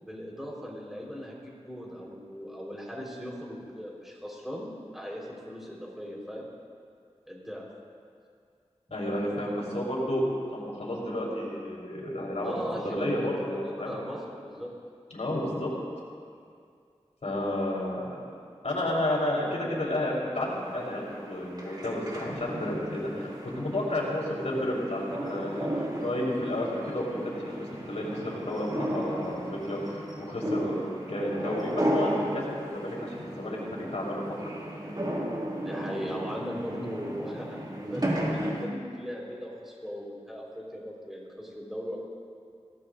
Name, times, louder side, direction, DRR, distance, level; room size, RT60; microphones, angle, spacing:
voice 1, 0.0-6.5 7.3-7.6 12.4-13.1 13.6-14.7 35.6-42.0, equal, 5° right, -4 dB, 4.5 m, -38 dB
voice 2, 8.9-10.2 10.5-12.5 12.8-13.9 15.1-15.7 17.2-18.2 18.6-34.5, left 1 dB, 75° left, -4 dB, 4.1 m, -31 dB
sound 1, 20.5-38.7, right 1 dB, 35° right, 2.4 m, -34 dB
22.5 x 18.0 x 2.7 m, 2.3 s
wide cardioid pair, 60°, 11 cm